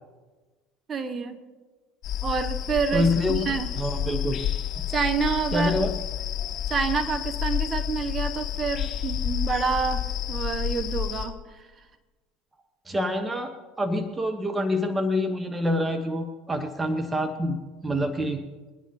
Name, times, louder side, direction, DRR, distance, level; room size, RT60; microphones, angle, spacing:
voice 1, 0.9-1.4 2.2-3.7 4.9-5.9 6.7-11.7, right 5 dB, 35° right, 7 dB, 1.3 m, -28 dB
sound 1, 2.0-11.2, left 10 dB, 40° left, 3.9 m, -30 dB
voice 2, 2.9-4.4 4.8-4.9 5.5-5.9 12.9-13.5 13.8-18.4, left 1 dB, 15° right, 7 dB, 1.1 m, -26 dB
21.5 x 10.0 x 2.9 m, 1.3 s
hypercardioid pair, 70°, 0 cm